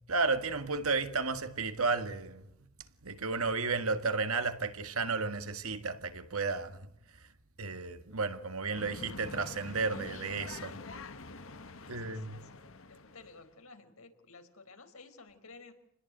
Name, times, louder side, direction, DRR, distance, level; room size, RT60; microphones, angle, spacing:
voice 1, 0.1-2.5 3.0-6.9 7.6-10.8 11.9-12.4, right 4 dB, 80° right, 1.8 m, -33 dB
sound 1, 8.7-13.6, left 3 dB, 65° left, 1.4 m, -46 dB
voice 2, 11.8-12.6 12.9-15.7, left 3 dB, 80° left, 4.6 m, -54 dB
28.0 x 21.0 x 9.0 m
head